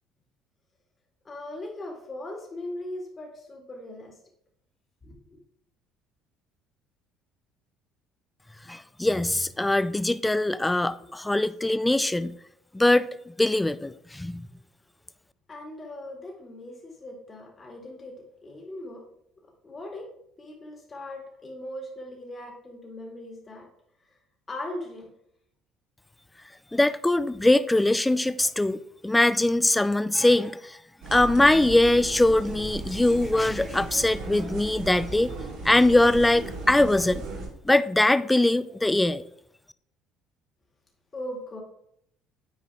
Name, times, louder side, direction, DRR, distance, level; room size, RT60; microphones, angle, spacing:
voice 1, 1.2-4.2 5.0-5.4 11.0-11.1 15.5-19.0 19.6-20.1 20.4-23.7 24.0-24.2 24.5-25.1 41.1-41.6, left 1 dB, 30° left, 2.1 m, -39 dB
voice 2, 8.7-12.4 12.7-13.1 13.4-14.4 26.7-30.8 31.1-35.3 35.6-37.2 37.6-39.2, left 1 dB, 10° left, 0.4 m, -22 dB
sound 1, 31.0-37.5, right 3 dB, 75° right, 2.4 m, -37 dB
9.0 x 4.7 x 3.5 m
hypercardioid pair, 70°, 0 cm